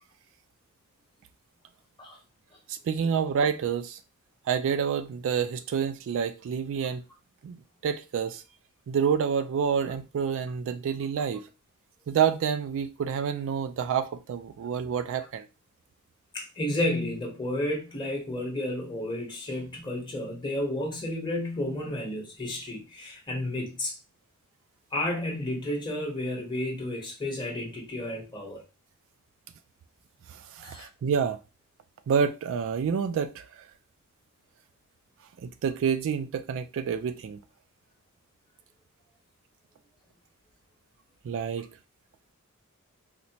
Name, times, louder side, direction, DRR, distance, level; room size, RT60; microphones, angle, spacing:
voice 1, 2.7-4.0 4.5-7.0 7.4-8.4 8.9-11.5 12.1-15.5 30.3-31.4 32.1-33.5 35.4-37.4 41.2-41.7, right 7 dB, 60° right, 0.3 m, -28 dB
voice 2, 16.3-23.9 24.9-28.6 30.6-30.9, left 1 dB, 20° left, 1.1 m, -32 dB
4.1 x 2.1 x 2.8 m
head